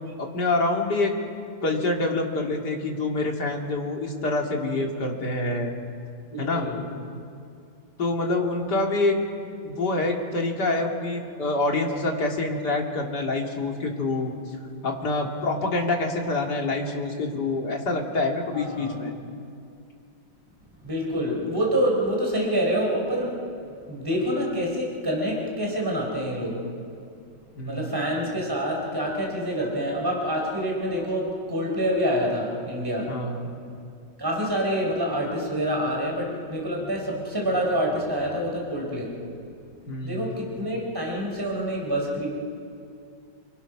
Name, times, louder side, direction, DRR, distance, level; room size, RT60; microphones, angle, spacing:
voice 1, 0.2-1.1 1.6-5.7 6.4-6.7 8.0-9.2 9.6-14.3 14.8-19.1 27.6-28.0 33.1-33.5 39.9-40.3, left 2 dB, 65° left, 1 dB, 3.4 m, -26 dB
voice 2, 6.3-6.8 18.5-19.0 20.8-23.4 23.9-26.6 27.7-33.2 34.2-39.2 40.0-42.3, equal, 10° right, -1 dB, 4.2 m, -27 dB
29.0 x 25.0 x 6.2 m, 2.4 s
omnidirectional pair, 2.0 m